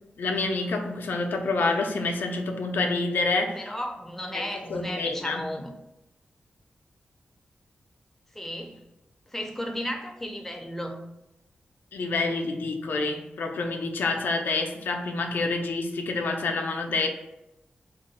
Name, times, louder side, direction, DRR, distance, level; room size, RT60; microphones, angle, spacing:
voice 1, 0.2-3.7 4.3-5.5 11.9-17.1, left 3 dB, 85° left, 3 dB, 0.4 m, -28 dB
voice 2, 3.5-5.7 8.3-8.8 9.3-11.0, equal, 10° left, 2 dB, 0.4 m, -34 dB
2.3 x 2.1 x 3.9 m, 0.92 s
wide cardioid pair, 115°, 3 cm